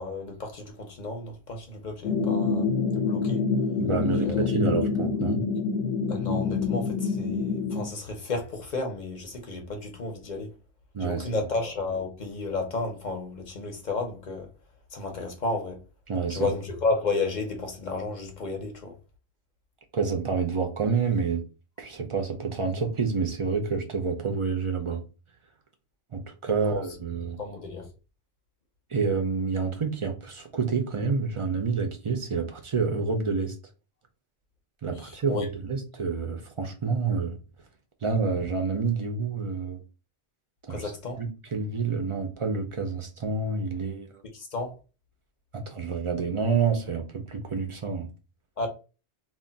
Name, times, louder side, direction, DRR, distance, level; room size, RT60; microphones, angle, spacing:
voice 1, 0.0-3.5 4.0-4.5 6.1-10.5 11.0-14.5 14.9-15.8 16.3-19.0 26.5-26.8 27.4-27.9 35.0-35.5 40.7-41.2 44.3-44.7 48.6-48.7, left 3 dB, 45° left, 0.7 m, -32 dB
sound 1, 2.0-7.8, left 5 dB, 80° left, 0.9 m, -26 dB
voice 2, 3.8-5.4 10.9-11.3 16.1-16.5 19.9-21.4 21.8-25.0 26.1-27.4 28.9-33.5 34.8-37.4 38.0-39.8 40.7-40.9 41.2-44.1 45.5-48.1, right 5 dB, 50° right, 0.4 m, -28 dB
2.4 x 2.1 x 3.7 m
omnidirectional pair, 1.1 m